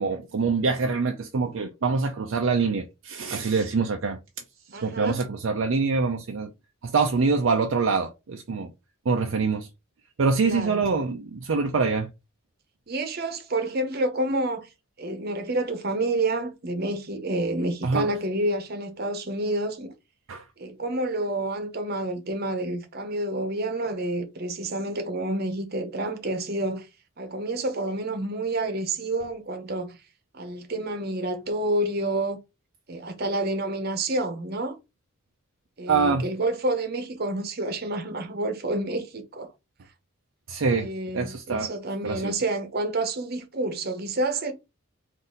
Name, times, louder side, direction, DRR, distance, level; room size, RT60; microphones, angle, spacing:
voice 1, 0.0-4.2 4.7-6.5 6.8-8.7 9.1-9.7 10.2-12.1 17.8-18.1 20.3-20.4 35.9-36.2 40.5-41.7 42.0-42.3, right 4 dB, 60° right, 0.5 m, -25 dB
voice 2, 4.7-5.2 10.4-10.8 12.9-14.7 15.0-19.9 20.6-26.9 27.2-30.0 30.3-32.4 32.9-34.8 35.8-39.5 40.7-44.5, right 2 dB, 45° right, 0.9 m, -29 dB
4.0 x 2.6 x 3.8 m
head